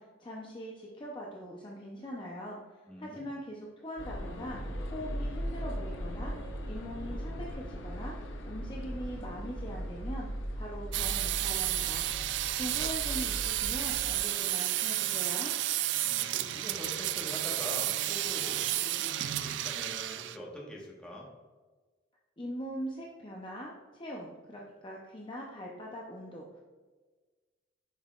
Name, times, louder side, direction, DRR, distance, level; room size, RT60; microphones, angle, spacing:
voice 1, 0.0-4.6 4.9-6.3 6.6-8.1 8.4-12.1 12.5-15.5 22.4-26.6, equal, 25° left, -2 dB, 0.6 m, -42 dB
voice 2, 2.9-3.3 16.0-21.3, equal, 5° left, -4 dB, 1.2 m, -44 dB
sound 1, 4.0-14.2, equal, 85° left, 0.8 m, -38 dB
sound 2, 10.9-20.4, right 14 dB, 65° right, 0.3 m, -32 dB
7.4 x 5.5 x 2.4 m, 1.3 s
head